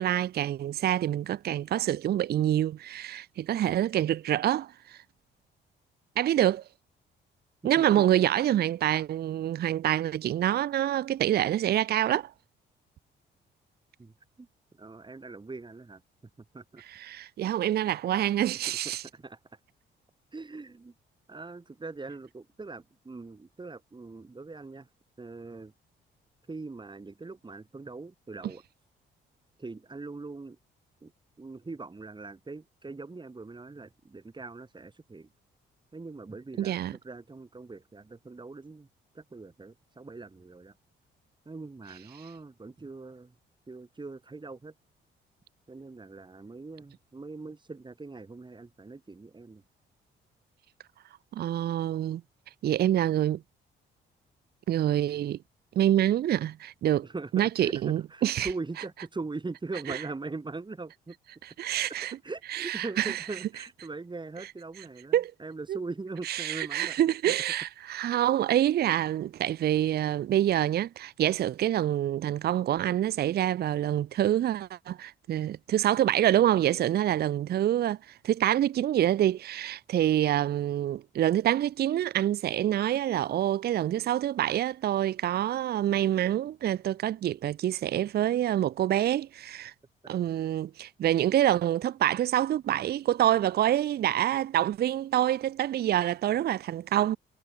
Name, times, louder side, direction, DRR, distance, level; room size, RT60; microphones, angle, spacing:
voice 1, 0.0-5.0 6.2-6.6 7.6-12.3 17.0-19.0 36.6-36.9 51.3-52.2 52.6-53.4 54.7-55.4 55.8-57.1 57.3-58.5 61.6-62.2 62.5-63.2 65.1-65.3 66.3-89.7 90.1-97.2, right 12 dB, 55° right, 0.5 m, -26 dB
voice 2, 14.0-16.0 16.4-16.8 18.7-19.6 20.3-20.9 21.3-24.9 25.2-25.7 26.5-28.6 29.6-30.6 31.0-31.1 31.4-35.3 35.9-38.9 39.1-40.8 41.5-43.4 43.7-44.7 45.7-49.6 57.0-61.2 61.8-67.0, right 3 dB, 25° right, 5.9 m, -41 dB
cardioid pair, 90°, 20 cm